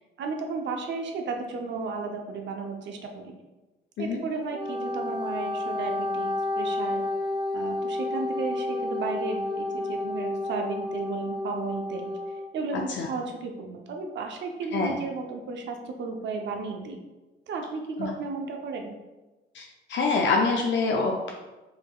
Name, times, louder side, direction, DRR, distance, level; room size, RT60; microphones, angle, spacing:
voice 1, 0.2-3.3 4.0-7.0 7.5-12.1 12.5-17.0 17.5-19.0, right 4 dB, 65° right, 3 dB, 0.6 m, -34 dB
Wind instrument woodwind instrument, 4.4-12.5, left 2 dB, 20° right, 0.6 m, -30 dB
voice 2, 12.7-13.1 14.7-14.9 18.0-18.1 19.5-19.6 19.9-21.3, left 4 dB, 70° left, 1 dB, 0.5 m, -25 dB
5.3 x 2.7 x 2.3 m, 1.1 s
cardioid pair, 90°, 20 cm